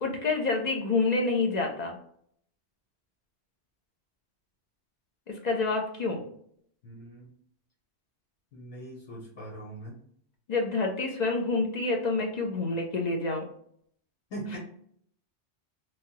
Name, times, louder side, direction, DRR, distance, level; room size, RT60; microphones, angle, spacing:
voice 1, 0.0-2.0 5.3-6.2 10.5-13.5, left 3 dB, 50° left, 1 dB, 0.6 m, -28 dB
voice 2, 6.8-7.3 8.5-10.0 14.3-14.6, right 1 dB, 80° left, -5 dB, 1.3 m, -41 dB
3.1 x 2.3 x 2.8 m, 0.65 s
omnidirectional pair, 1.2 m